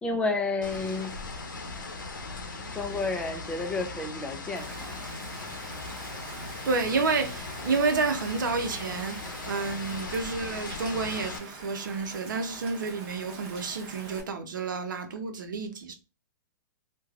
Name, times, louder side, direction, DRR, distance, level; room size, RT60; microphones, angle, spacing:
voice 1, 0.0-1.2 2.7-5.0 9.3-9.4, left 3 dB, 10° left, 0.3 m, -31 dB
sound 1, 0.6-11.4, left 3 dB, 85° left, 0.7 m, -39 dB
Rain, 4.6-14.2, right 3 dB, 40° right, 1.0 m, -44 dB
voice 2, 6.6-15.9, right 4 dB, 75° right, 0.7 m, -30 dB
3.1 x 2.2 x 2.3 m
hypercardioid pair, 130°, 11 cm